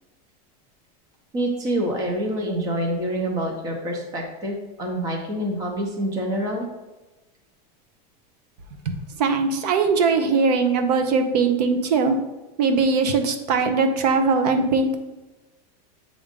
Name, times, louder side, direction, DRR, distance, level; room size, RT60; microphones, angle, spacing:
voice 1, 1.3-6.7, right 1 dB, 15° right, 1 dB, 0.6 m, -26 dB
voice 2, 8.8-12.2 12.6-15.0, right 4 dB, 75° right, 6 dB, 0.8 m, -21 dB
7.3 x 2.5 x 5.1 m, 1.1 s
supercardioid pair, 180°, 21 cm